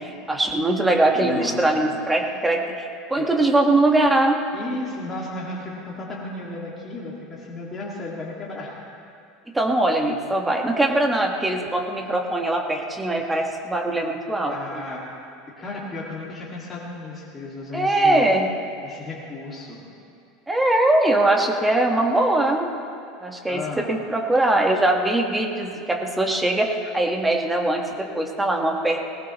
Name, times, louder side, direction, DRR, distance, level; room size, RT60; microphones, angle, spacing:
voice 1, 0.0-4.4 9.5-14.8 17.7-18.5 20.5-22.7 23.2-29.0, right 2 dB, 5° right, 1 dB, 1.3 m, -21 dB
voice 2, 1.1-1.8 3.1-3.3 4.5-8.8 14.5-15.0 15.5-18.3 18.8-19.8 23.5-23.9, left 2 dB, 20° left, -5 dB, 2.0 m, -34 dB
20.0 x 19.0 x 3.0 m, 2.6 s
supercardioid pair, 155°, 0 cm